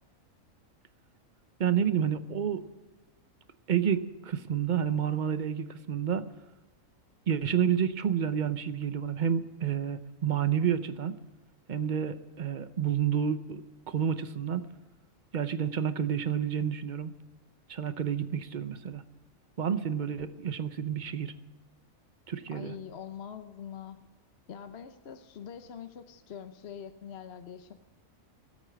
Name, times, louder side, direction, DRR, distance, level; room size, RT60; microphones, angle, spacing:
voice 1, 1.6-2.6 3.7-6.3 7.3-11.2 11.7-13.6 13.9-14.6 15.3-17.1 17.7-19.0 19.6-21.3 22.3-22.7, right 8 dB, 45° right, 11 dB, 0.7 m, -29 dB
voice 2, 22.5-24.0 24.5-27.7, left 8 dB, 55° left, 8 dB, 1.0 m, -44 dB
19.0 x 8.3 x 7.5 m, 1.1 s
omnidirectional pair, 1.4 m